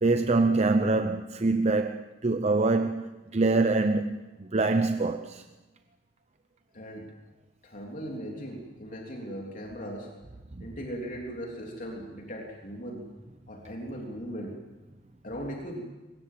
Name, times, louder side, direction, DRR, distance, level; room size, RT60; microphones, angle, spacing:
voice 1, 0.0-5.4 10.5-10.7, right 3 dB, 35° right, 0.8 m, -25 dB
voice 2, 6.7-7.1 7.6-10.1 10.6-13.0 13.5-14.6 15.2-15.8, equal, 45° left, 3.4 m, -38 dB
24.0 x 20.0 x 7.6 m
head